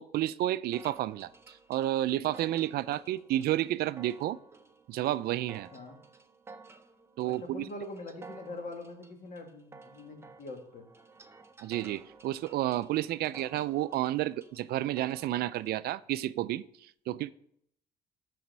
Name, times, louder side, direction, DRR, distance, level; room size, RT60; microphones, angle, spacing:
voice 1, 0.0-4.4 4.9-5.7 7.2-7.6 11.6-17.3, right 14 dB, 65° right, 0.4 m, -31 dB
sound 1, 0.7-15.7, right 4 dB, 15° right, 0.7 m, -54 dB
voice 2, 7.2-10.9 17.1-17.2, left 2 dB, 50° left, 2.0 m, -43 dB
12.5 x 4.2 x 5.4 m
cardioid pair, 110°, 17 cm